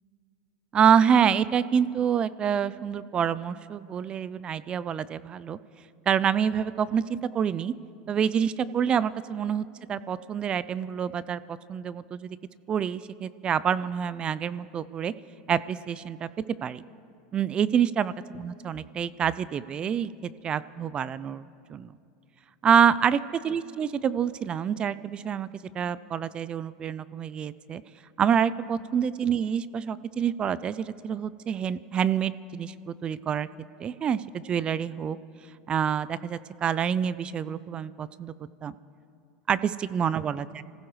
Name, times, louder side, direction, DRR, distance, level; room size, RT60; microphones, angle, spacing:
voice 1, 0.7-5.6 6.1-7.7 8.1-12.4 12.7-15.1 15.5-16.3 16.6-16.8 17.3-20.1 20.4-21.4 21.7-21.9 22.6-23.2 23.4-25.5 25.7-27.8 28.2-33.5 33.8-35.2 35.7-38.3 38.6-38.7 39.5-40.6, right 8 dB, 30° right, 17 dB, 0.4 m, -27 dB
25.5 x 15.5 x 3.2 m, 2.4 s
supercardioid pair, 105°, 3 cm